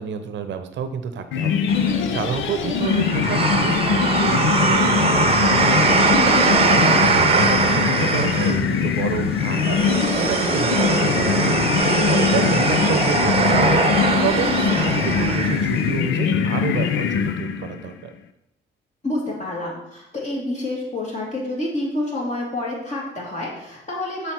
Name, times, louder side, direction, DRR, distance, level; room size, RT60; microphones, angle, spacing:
voice 1, 0.0-11.8 12.1-18.1, right 6 dB, 65° right, 9 dB, 0.8 m, -29 dB
sound 1, 1.3-17.9, left 7 dB, 75° left, 0.6 m, -22 dB
sound 2, 1.7-15.9, right 4 dB, 30° right, 0.9 m, -21 dB
voice 2, 19.0-24.3, left 1 dB, 35° left, -3 dB, 2.8 m, -28 dB
6.7 x 5.7 x 4.6 m, 0.84 s
cardioid pair, 90°, 20 cm